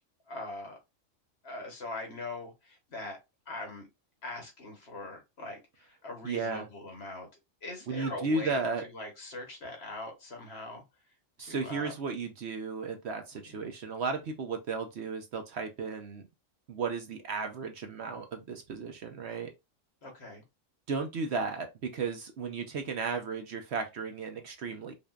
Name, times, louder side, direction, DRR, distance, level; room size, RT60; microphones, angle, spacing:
voice 1, 0.3-0.8 1.4-3.2 3.5-3.9 4.2-7.3 7.6-10.8 11.4-11.9 13.5-13.6 20.0-20.4, left 2 dB, 55° left, 1.4 m, -42 dB
voice 2, 6.2-6.7 7.9-8.8 11.4-16.2 16.7-19.5 20.9-24.9, right 4 dB, 60° right, 0.9 m, -34 dB
5.2 x 2.7 x 2.4 m
omnidirectional pair, 1.4 m